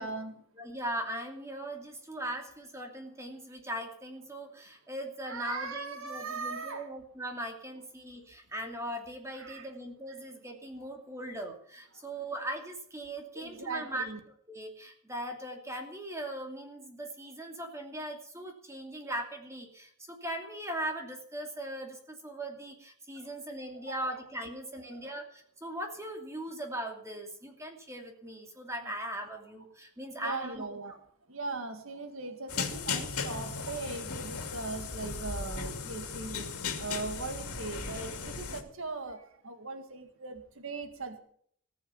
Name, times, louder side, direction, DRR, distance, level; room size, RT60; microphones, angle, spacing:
voice 1, 0.0-0.4 5.3-6.9 9.3-9.7 13.4-14.2 23.9-24.2 24.9-25.0 30.1-31.0 31.3-36.5 36.8-41.2, right 3 dB, 65° right, 7 dB, 1.9 m, -39 dB
voice 2, 0.5-14.1 14.5-30.8, right 1 dB, 15° right, 3 dB, 2.6 m, -39 dB
sound 1, 32.5-38.6, left 5 dB, 85° left, 2.4 m, -36 dB
19.5 x 7.1 x 7.0 m, 0.63 s
head